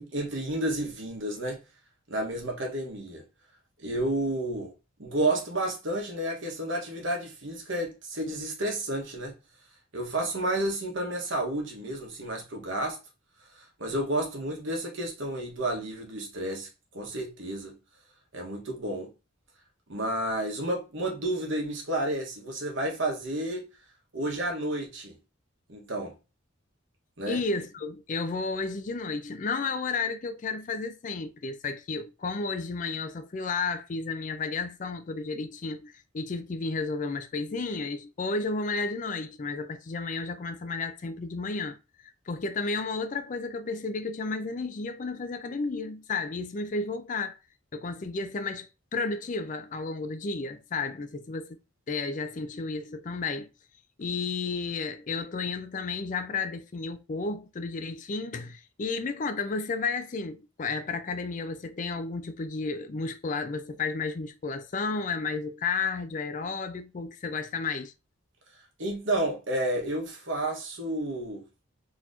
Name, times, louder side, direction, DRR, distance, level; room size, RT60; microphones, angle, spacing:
voice 1, 0.1-1.6 2.1-3.2 3.8-4.7 5.0-9.3 9.9-13.0 13.5-16.7 16.9-17.7 18.3-19.1 19.9-23.7 24.1-25.2 25.7-26.1 27.2-27.4 68.8-71.4, right 1 dB, 65° right, 1.1 m, -31 dB
voice 2, 27.3-41.8 42.3-47.4 47.7-51.6 51.9-53.5 54.0-67.9, left 4 dB, 35° left, 0.4 m, -32 dB
3.9 x 2.9 x 2.5 m
head